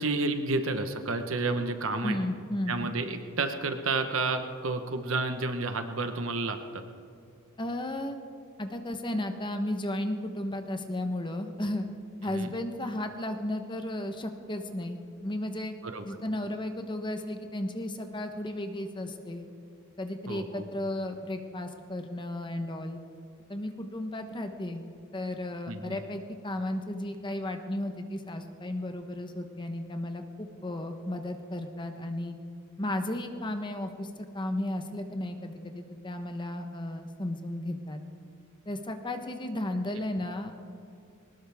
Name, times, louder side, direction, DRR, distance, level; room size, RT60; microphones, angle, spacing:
voice 1, 0.0-2.2 2.7-6.8 12.3-12.5 15.8-16.0 20.3-20.6 25.7-26.0, right 3 dB, 65° right, 7 dB, 1.1 m, -30 dB
voice 2, 2.0-2.9 7.6-8.2 8.6-11.9 12.2-15.7 16.0-19.5 20.0-23.0 23.5-24.8 25.1-32.4 32.8-38.0 38.7-40.6, left 1 dB, 20° left, 6 dB, 0.9 m, -34 dB
21.5 x 19.0 x 3.5 m, 2.6 s
head